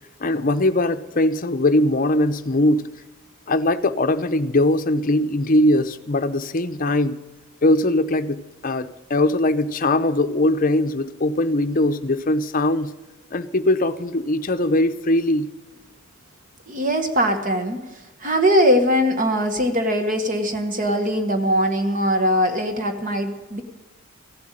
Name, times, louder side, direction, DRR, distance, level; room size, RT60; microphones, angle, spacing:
voice 1, 0.2-2.9 3.5-7.2 7.6-12.9 13.3-15.5, left 1 dB, 40° left, 10 dB, 0.7 m, -20 dB
voice 2, 16.7-17.8 18.2-23.6, equal, 40° right, 7 dB, 1.3 m, -21 dB
15.0 x 7.9 x 8.9 m, 1.2 s
head